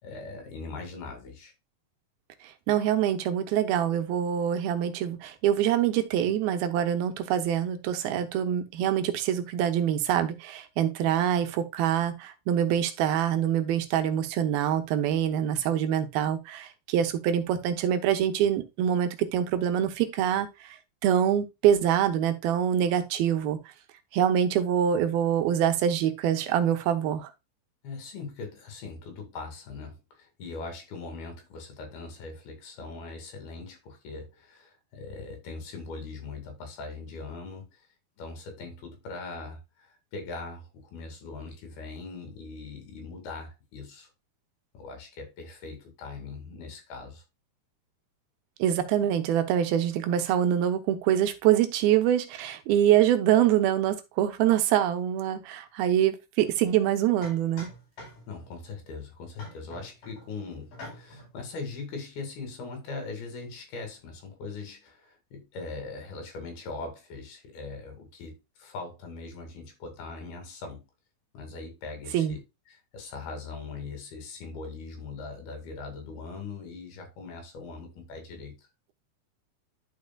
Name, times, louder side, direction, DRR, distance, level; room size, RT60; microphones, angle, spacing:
voice 1, 0.0-1.5 27.8-37.9 38.2-44.1 44.7-47.2 58.3-70.9 71.3-72.4 72.7-78.7, left 4 dB, 85° left, 4.3 m, -41 dB
voice 2, 2.7-20.8 21.0-23.6 24.1-27.3 48.6-57.7 72.1-72.4, right 10 dB, 80° right, 2.8 m, -25 dB
sound 1, 56.4-56.6 57.2-58.5 59.4-60.3 60.7-61.3, left 1 dB, 65° left, 6.0 m, -45 dB
12.0 x 4.9 x 2.3 m
omnidirectional pair, 4.3 m